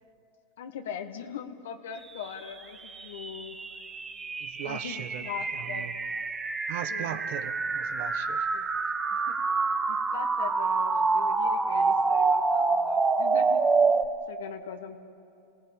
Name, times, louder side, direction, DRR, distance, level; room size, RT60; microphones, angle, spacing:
voice 1, 0.6-3.6 4.6-5.9 6.9-7.2 8.5-8.7 9.1-9.4 9.9-13.6 14.3-15.0, left 8 dB, 75° left, 5 dB, 1.4 m, -41 dB
sound 1, 2.2-14.1, right 4 dB, 20° right, 1.5 m, -27 dB
voice 2, 4.4-5.2 5.5-5.9 6.7-8.5, right 11 dB, 60° right, 11 dB, 1.2 m, -38 dB
27.5 x 17.5 x 8.8 m, 2.6 s
hypercardioid pair, 100°, 0 cm